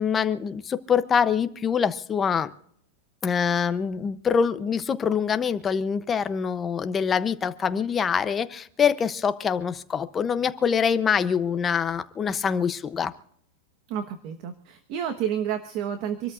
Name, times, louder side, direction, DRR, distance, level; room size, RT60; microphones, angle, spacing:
voice 1, 0.0-2.5 3.2-13.1, left 7 dB, 15° left, 11 dB, 0.6 m, -25 dB
voice 2, 13.9-16.3, right 9 dB, 35° right, 9 dB, 1.2 m, -30 dB
26.5 x 13.5 x 2.5 m, 0.66 s
supercardioid pair, 175°, 0 cm